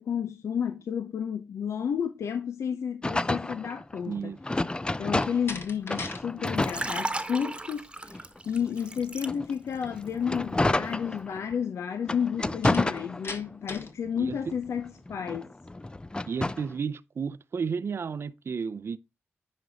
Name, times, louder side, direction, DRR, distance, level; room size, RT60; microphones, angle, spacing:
voice 1, 0.0-4.3 5.0-15.5, left 7 dB, 75° left, 0.7 m, -31 dB
sound 1, 3.0-5.6 5.9-7.5 8.1-11.6 12.0-13.6 14.1-16.7, left 2 dB, 20° left, 0.5 m, -30 dB
voice 2, 4.1-4.4 14.2-14.4 16.3-19.0, right 6 dB, 60° right, 0.5 m, -32 dB
Slam, 5.1-6.2 6.6-7.0 12.6-14.0, left 3 dB, 55° left, 1.8 m, -39 dB
Liquid, 6.4-9.8 10.1-10.4, right 2 dB, 20° right, 1.2 m, -35 dB
9.6 x 5.3 x 4.0 m
cardioid pair, 50°, 5 cm